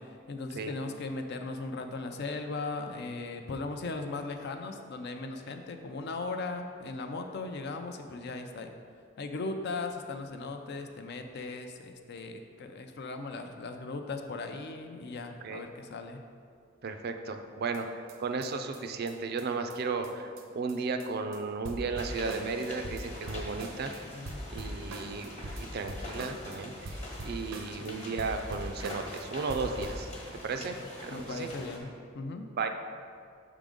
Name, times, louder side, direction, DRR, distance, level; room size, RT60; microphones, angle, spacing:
voice 1, 0.0-8.7 9.2-16.2 24.1-24.4 27.8-27.9 30.5-32.5, left 3 dB, 55° left, 6 dB, 0.5 m, -38 dB
voice 2, 16.8-17.9 18.2-23.9 24.5-30.1 30.4-30.8 31.0-31.5 32.6-32.7, right 4 dB, 50° right, 6 dB, 0.4 m, -34 dB
sound 1, 17.7-17.8 18.1-18.2 18.4-18.5 18.7-18.8 19.1-19.2 19.4-19.5 19.7-19.8 20.0-20.1 20.4-20.5 20.7-21.1 21.3-21.4 21.6-24.0 24.3-26.6 26.9-27.9 28.2-29.2 29.5-30.1, right 1 dB, 85° right, 0.7 m, -41 dB
sound 2, 21.9-31.8, left 1 dB, 35° left, 1.2 m, -45 dB
6.0 x 3.7 x 5.1 m, 2.3 s
head